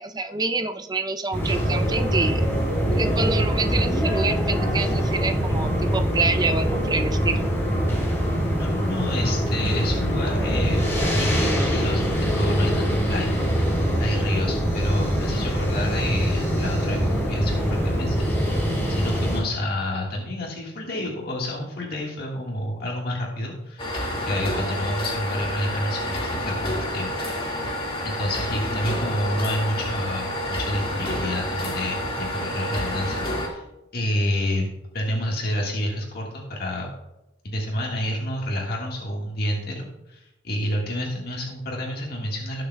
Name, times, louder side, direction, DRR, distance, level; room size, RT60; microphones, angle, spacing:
voice 1, 0.0-2.4 2.9-7.4, right 3 dB, 25° right, 7 dB, 0.6 m, -27 dB
sound 1, 1.3-19.4, equal, 15° left, 4.0 m, -23 dB
voice 2, 8.5-13.4 14.0-18.6 18.9-23.9 24.3-27.3 28.0-33.6 33.9-34.7 34.9-36.9 37.4-42.6, left 1 dB, 60° left, -2 dB, 1.7 m, -29 dB
sound 2, 23.8-33.5, left 1 dB, 30° left, 2.0 m, -29 dB
18.5 x 6.7 x 2.3 m, 0.91 s
head